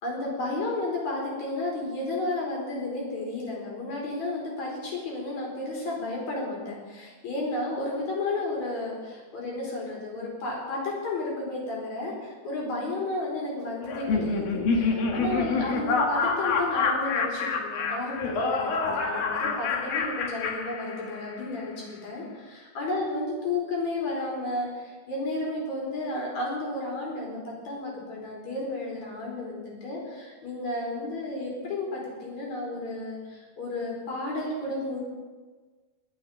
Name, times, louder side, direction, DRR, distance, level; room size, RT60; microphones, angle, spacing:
voice 1, 0.0-35.0, left 2 dB, 50° left, -3 dB, 5.9 m, -32 dB
Laughter, 13.9-21.4, left 4 dB, 80° left, 3.5 m, -27 dB
23.5 x 8.3 x 5.7 m, 1.4 s
omnidirectional pair, 4.1 m